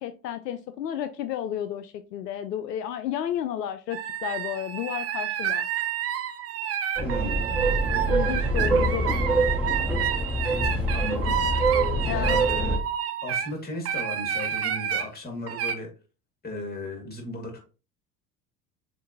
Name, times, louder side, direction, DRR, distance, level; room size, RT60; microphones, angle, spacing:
voice 1, 0.0-5.7 8.1-9.1 12.1-12.4, left 10 dB, 75° left, 11 dB, 0.5 m, -32 dB
sound 1, 3.9-13.5 13.9-15.1 15.5-15.7, right 9 dB, 30° right, 0.6 m, -29 dB
voice 2, 7.0-7.4 9.0-9.1 10.9-11.6 12.0-12.8 13.2-15.9 16.4-17.6, left 1 dB, 20° left, 2 dB, 2.1 m, -36 dB
sound 2, 7.0-12.8, right 2 dB, ahead, 1.5 m, -25 dB
7.0 x 2.6 x 2.8 m, 0.33 s
figure-of-eight pair, 65°, 49 cm